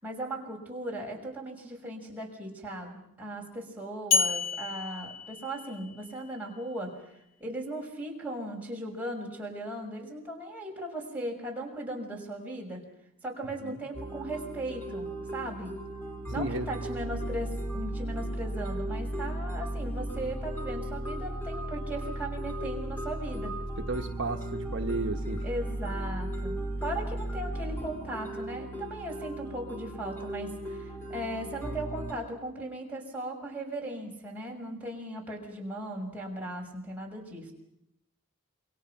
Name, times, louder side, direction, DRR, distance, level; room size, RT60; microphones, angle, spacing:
voice 1, 0.0-7.1 7.4-12.8 13.2-15.7 16.3-23.5 25.4-37.5, right 1 dB, 5° right, -2 dB, 6.4 m, -37 dB
sound 1, 4.1-6.2, left 5 dB, 65° left, 1.7 m, -30 dB
sound 2, 13.9-32.1, right 1 dB, 10° left, 5.1 m, -36 dB
voice 2, 23.9-25.4, right 2 dB, 55° right, 3 dB, 1.2 m, -33 dB
28.5 x 23.0 x 6.0 m, 0.79 s
head